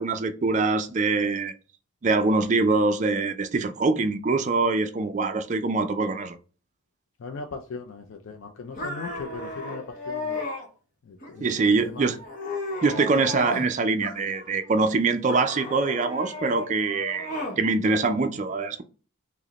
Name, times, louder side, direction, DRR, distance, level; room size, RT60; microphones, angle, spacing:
voice 1, 0.0-1.5 2.0-6.4 11.4-12.2 12.8-17.3 17.6-18.8, right 3 dB, 35° right, 0.4 m, -24 dB
voice 2, 7.2-10.4 11.0-12.2, left 4 dB, 65° left, 0.4 m, -39 dB
sound 1, 8.8-10.7 11.2-11.7 12.1-13.7 14.0-14.7 15.3-17.6, left 2 dB, 40° left, 0.9 m, -34 dB
4.9 x 2.1 x 2.9 m
head